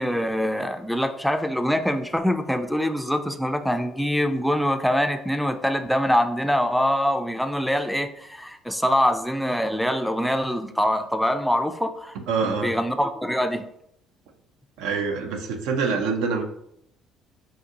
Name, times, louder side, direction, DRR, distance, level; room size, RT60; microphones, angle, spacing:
voice 1, 0.0-12.2 12.4-13.6, equal, ahead, 7 dB, 0.3 m, -24 dB
voice 2, 12.2-12.7 14.8-16.4, right 5 dB, 80° right, 6 dB, 0.4 m, -25 dB
3.7 x 2.5 x 2.7 m, 0.74 s
supercardioid pair, 80°, 0 cm